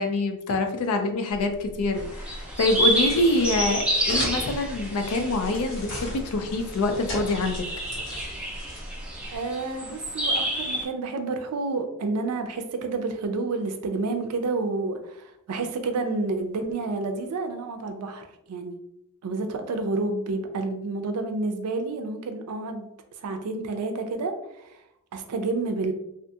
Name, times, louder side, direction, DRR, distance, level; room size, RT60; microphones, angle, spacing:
voice 1, 0.0-7.6, left 2 dB, 70° left, 6 dB, 0.4 m, -25 dB
sound 1, 1.3-9.4, equal, 55° left, 1.2 m, -37 dB
sound 2, 1.9-10.8, right 1 dB, 5° right, 0.6 m, -30 dB
voice 2, 9.3-18.8 19.2-22.9 23.2-24.8 25.1-25.9, right 3 dB, 80° right, 6 dB, 0.4 m, -29 dB
2.4 x 2.2 x 2.7 m, 0.81 s
head